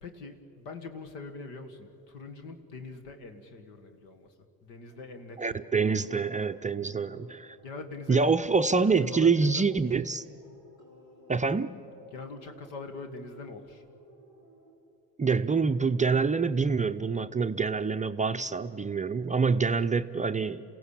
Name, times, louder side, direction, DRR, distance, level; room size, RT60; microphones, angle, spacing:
voice 1, 0.0-4.3 4.6-5.9 7.6-8.3 9.1-9.8 12.1-13.8, left 3 dB, 70° left, 7 dB, 2.0 m, -43 dB
sound 1, 4.9-14.7, equal, 90° left, 3.8 m, -56 dB
voice 2, 5.4-7.6 8.1-10.2 11.3-11.7 15.2-20.6, right 4 dB, 15° right, 8 dB, 0.6 m, -26 dB
28.5 x 16.0 x 8.4 m, 2.8 s
hypercardioid pair, 60°, 47 cm